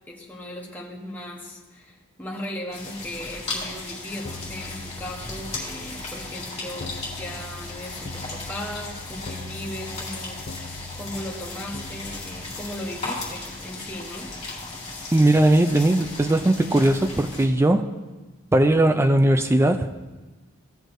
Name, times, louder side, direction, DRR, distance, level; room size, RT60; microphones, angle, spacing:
voice 1, 0.1-14.3, left 1 dB, 10° left, -2 dB, 1.0 m, -37 dB
sound 1, 2.7-17.5, left 2 dB, 30° left, 2.3 m, -36 dB
sound 2, 4.2-15.6 16.0-17.2, left 3 dB, 50° left, 0.5 m, -43 dB
voice 2, 15.1-17.9 18.5-19.9, right 1 dB, 10° right, 8 dB, 0.3 m, -19 dB
15.5 x 6.3 x 2.6 m, 1.2 s
head